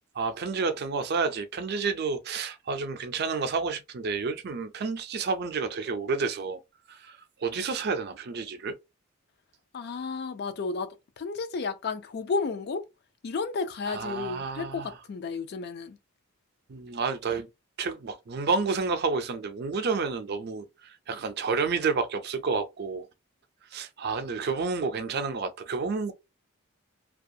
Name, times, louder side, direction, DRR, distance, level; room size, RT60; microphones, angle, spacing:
voice 1, 0.2-6.6 6.9-8.7 13.9-15.0 16.7-17.5 17.8-23.1 23.7-26.1, right 4 dB, 50° right, 0.4 m, -30 dB
voice 2, 9.7-12.8 13.2-16.0, left 4 dB, 50° left, 0.4 m, -32 dB
2.4 x 2.3 x 2.6 m
head